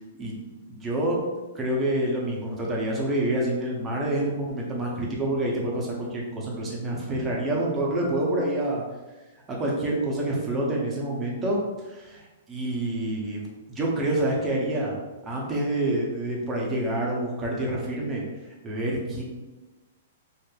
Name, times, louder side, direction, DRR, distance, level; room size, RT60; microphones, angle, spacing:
voice 1, 0.7-1.2 1.5-8.8 9.5-11.6 11.8-14.9 15.2-18.2 18.6-19.2, right 1 dB, 20° right, -3 dB, 0.8 m, -27 dB
3.1 x 2.5 x 2.4 m, 1.2 s
hypercardioid pair, 135°, 0 cm